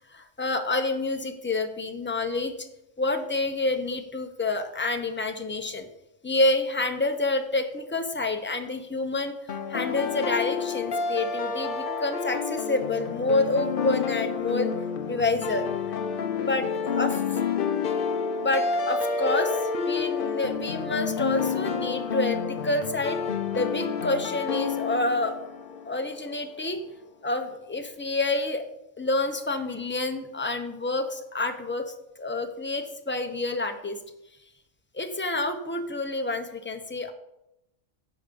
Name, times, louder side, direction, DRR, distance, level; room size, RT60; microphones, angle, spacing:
voice 1, 0.1-2.5 3.0-5.9 6.2-9.3 9.7-14.7 15.1-15.7 16.4-17.4 17.9-18.0 18.4-19.6 19.9-23.2 23.5-25.4 25.9-26.8 27.2-28.6 29.0-34.0 34.9-37.1, left 2 dB, 10° left, 7 dB, 0.8 m, -28 dB
sound 1, 9.5-26.4, left 6 dB, 50° left, 0.8 m, -29 dB
10.5 x 5.1 x 7.0 m, 0.87 s
omnidirectional pair, 1.3 m